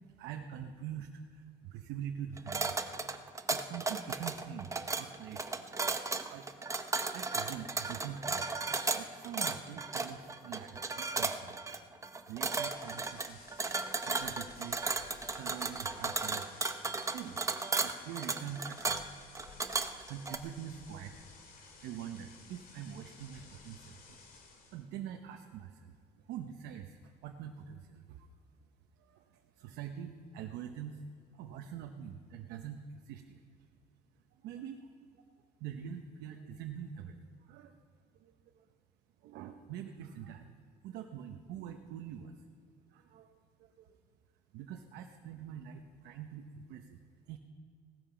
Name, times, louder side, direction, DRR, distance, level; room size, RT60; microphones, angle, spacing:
voice 1, 0.0-2.7 3.5-5.5 6.2-6.5 7.1-8.5 9.0-11.6 12.3-13.5 13.9-14.9 15.3-16.6 17.0-17.4 17.8-19.2 19.9-21.2 21.5-24.0 24.7-28.3 29.0-31.0 31.3-33.4 34.3-35.2 35.6-37.8 38.1-38.7 39.2-40.5 40.8-42.4 42.9-43.3 43.6-44.0 44.5-47.0 47.3-47.4, right 9 dB, 90° right, 4 dB, 0.9 m, -45 dB
sound 1, 2.4-20.4, right 3 dB, 20° right, 0.8 m, -35 dB
sound 2, 12.3-24.8, left 4 dB, 60° left, 2.7 m, -56 dB
17.5 x 12.5 x 5.0 m, 2.2 s
cardioid pair, 110°, 17 cm